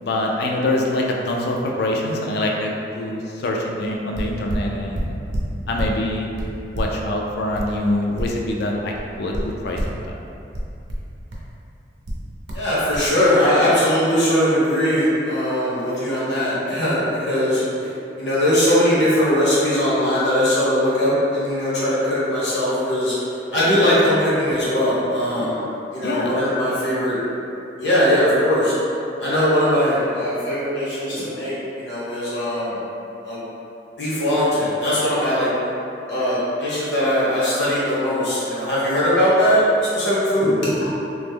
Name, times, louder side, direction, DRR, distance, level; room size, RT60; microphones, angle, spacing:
voice 1, 0.0-5.2 5.7-6.3 6.7-10.0 26.0-26.4, left 1 dB, 65° left, 0 dB, 0.4 m, -24 dB
sound 1, 4.1-6.0 6.4-8.6 8.9-10.0 10.5-11.5 12.0-12.7 12.9-13.1, equal, 90° right, 0.6 m, -28 dB
voice 2, 12.5-17.6 18.2-23.1 23.5-25.6 25.9-27.2 27.8-28.7 29.2-32.8 33.2-33.4 34.0-35.5 36.1-39.6 39.9-40.5, equal, 80° left, -9 dB, 1.1 m, -20 dB
3.1 x 2.0 x 3.4 m, 2.7 s
head